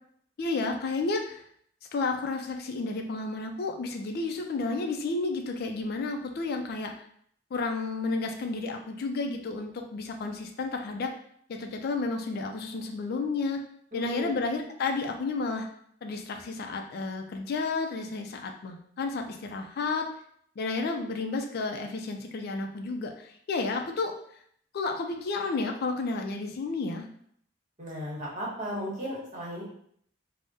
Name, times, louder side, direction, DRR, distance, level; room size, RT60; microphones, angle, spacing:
voice 1, 0.4-1.4 1.9-6.9 7.5-11.1 11.5-13.6 13.9-15.7 16.0-20.1 20.6-24.1 24.7-27.1, left 3 dB, 55° left, 4 dB, 0.3 m, -31 dB
voice 2, 13.9-14.3 27.8-29.6, equal, 40° right, -5 dB, 1.0 m, -35 dB
3.4 x 2.0 x 2.7 m, 0.64 s
head